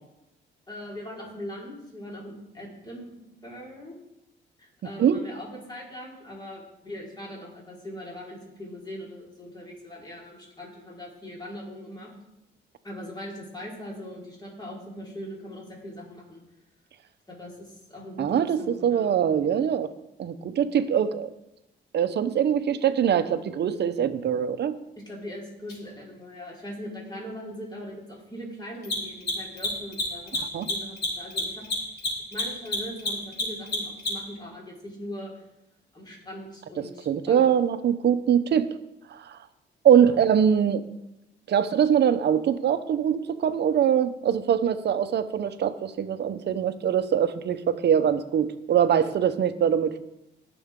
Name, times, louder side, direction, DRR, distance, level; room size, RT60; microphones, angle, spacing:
voice 1, 0.7-4.0 4.6-12.1 12.8-16.4 17.3-19.1 25.0-30.4 30.7-31.6 32.3-35.4 35.9-37.5 39.9-40.1, equal, 20° left, -4 dB, 4.5 m, -40 dB
voice 2, 18.2-19.9 20.2-21.3 21.9-24.7 30.4-30.7 36.8-38.7 39.1-39.4 39.8-40.8 41.5-50.0, right 8 dB, 60° right, 11 dB, 0.9 m, -23 dB
Mechanisms, 25.7-25.8 28.7-34.4, left 2 dB, 55° left, 4.2 m, -29 dB
19.0 x 7.1 x 3.8 m, 0.89 s
cardioid pair, 90°, 20 cm